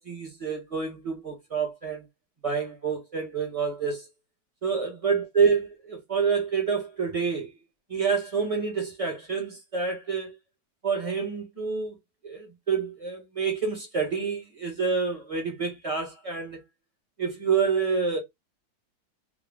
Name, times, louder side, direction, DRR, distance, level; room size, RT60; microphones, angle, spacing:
voice 1, 0.0-2.0 2.4-4.1 4.6-7.5 7.9-10.3 10.8-11.9 12.2-16.6 17.2-18.2, right 5 dB, 20° right, 1.0 m, -28 dB
3.8 x 2.3 x 3.5 m
omnidirectional pair, 2.1 m